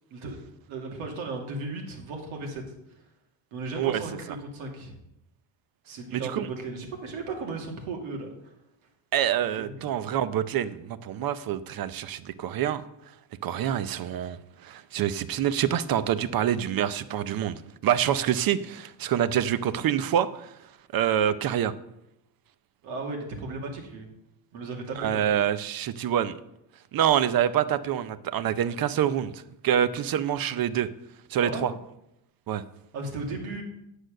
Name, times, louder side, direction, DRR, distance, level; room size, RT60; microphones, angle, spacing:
voice 1, 0.7-2.6 3.5-4.9 5.8-8.5 9.6-10.2 13.5-13.6 22.8-24.1 24.5-25.3 31.4-31.7 32.9-33.6, right 3 dB, 90° right, 2 dB, 2.6 m, -36 dB
voice 2, 6.1-6.5 9.1-12.9 13.4-14.4 14.6-20.5 20.9-21.7 25.0-26.4 26.9-30.9 31.3-31.7 32.5-32.6, right 10 dB, 45° right, 14 dB, 0.7 m, -26 dB
9.7 x 6.5 x 6.6 m, 0.83 s
cardioid pair, 130°, 47 cm